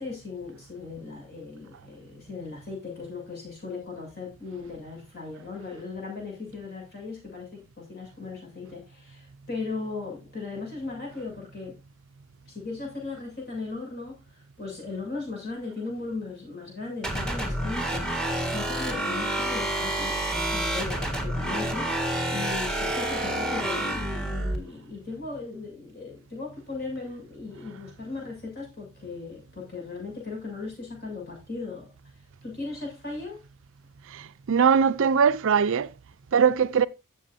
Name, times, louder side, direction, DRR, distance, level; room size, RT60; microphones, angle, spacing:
voice 1, 0.0-11.8 12.5-18.1 18.5-31.9 32.4-33.4, left 3 dB, 45° left, 7.3 m, -37 dB
sound 1, 17.0-24.6, right 1 dB, 5° left, 1.8 m, -28 dB
voice 2, 34.1-35.9 36.3-36.9, right 6 dB, 60° right, 0.5 m, -21 dB
15.0 x 7.0 x 2.7 m
head